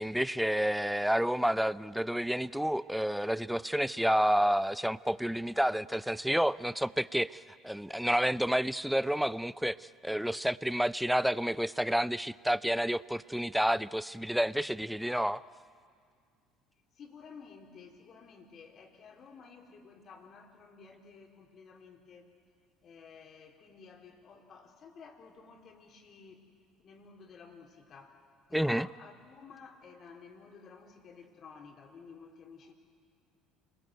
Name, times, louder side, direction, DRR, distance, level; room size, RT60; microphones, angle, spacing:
voice 1, 0.0-15.4 28.5-28.9, equal, ahead, 19 dB, 0.6 m, -30 dB
voice 2, 16.9-22.3 22.8-26.4 26.8-28.2 28.5-32.7, left 5 dB, 45° left, 3 dB, 3.9 m, -53 dB
29.0 x 21.0 x 9.2 m, 2.2 s
hypercardioid pair, 65°, 0 cm